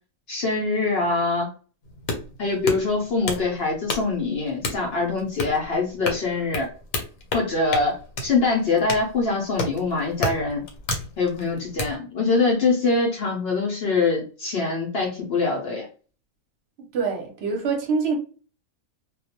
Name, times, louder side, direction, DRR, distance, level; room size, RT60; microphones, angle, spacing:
voice 1, 0.3-1.5 2.4-6.7 7.3-7.9 8.2-10.6 11.2-15.9, left 3 dB, 60° left, 0.7 m, -24 dB
sound 1, 1.8-11.9, left 2 dB, 80° left, 1.1 m, -32 dB
voice 2, 16.9-18.2, right 5 dB, 55° right, 0.9 m, -25 dB
2.3 x 2.1 x 2.8 m
omnidirectional pair, 1.5 m